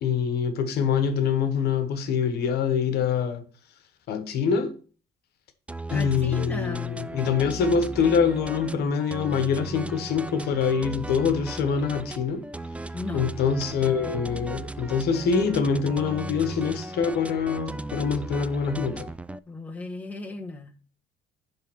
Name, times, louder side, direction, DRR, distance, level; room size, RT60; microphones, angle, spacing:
voice 1, 0.0-3.4 4.1-4.8 5.9-12.5 13.1-19.1, left 6 dB, 70° left, 1.2 m, -25 dB
sound 1, 5.7-19.4, right 2 dB, 5° right, 0.3 m, -36 dB
voice 2, 5.9-7.0 12.9-13.3 19.5-20.7, left 2 dB, 10° left, 1.2 m, -36 dB
10.5 x 3.5 x 6.1 m
cardioid pair, 110°, 17 cm